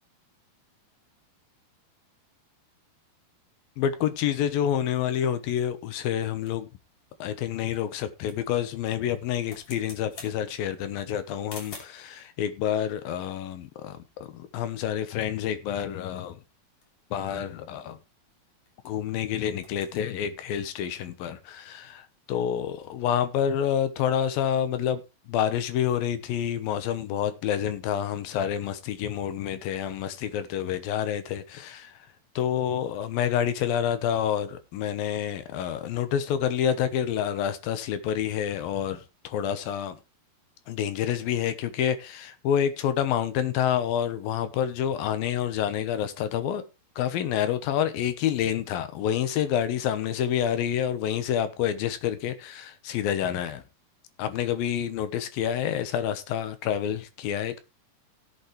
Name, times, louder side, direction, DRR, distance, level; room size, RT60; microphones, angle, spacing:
voice 1, 3.8-6.7 7.2-16.4 17.1-18.0 18.8-25.0 25.3-32.1 32.4-40.0 40.7-46.6 47.0-53.6 54.2-57.6, left 9 dB, 70° left, 2.5 m, -28 dB
sound 1, 5.8-12.1 12.9-14.5 14.8-14.9 15.2-15.5 15.9-19.2 19.4-20.1, left 4 dB, 40° left, 3.5 m, -51 dB
17.0 x 8.3 x 3.2 m
omnidirectional pair, 4.9 m